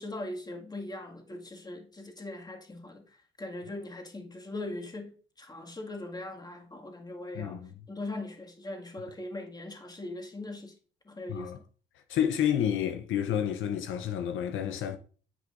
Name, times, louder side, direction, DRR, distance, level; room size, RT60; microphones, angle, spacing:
voice 1, 0.0-10.7 11.1-11.6, left 2 dB, 20° left, 1.9 m, -40 dB
voice 2, 7.3-7.7 11.3-11.6 12.1-15.0, left 9 dB, 80° left, 0.7 m, -29 dB
10.0 x 7.8 x 2.5 m
cardioid pair, 90°, 20 cm